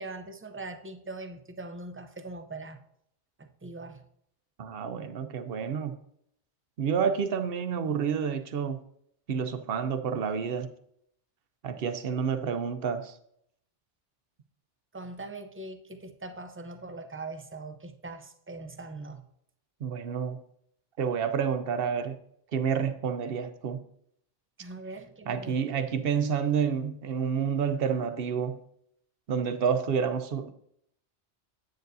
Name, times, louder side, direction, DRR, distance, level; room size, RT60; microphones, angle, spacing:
voice 1, 0.0-2.8 3.4-4.0 14.9-19.2 24.6-25.6, right 2 dB, 20° right, 0.3 m, -41 dB
voice 2, 4.6-6.0 6.8-8.8 9.3-10.7 11.6-13.1 19.8-20.4 21.0-22.2 22.5-23.8 25.3-28.6 29.3-30.5, right 7 dB, 60° right, 0.9 m, -29 dB
9.1 x 9.0 x 2.7 m
omnidirectional pair, 1.2 m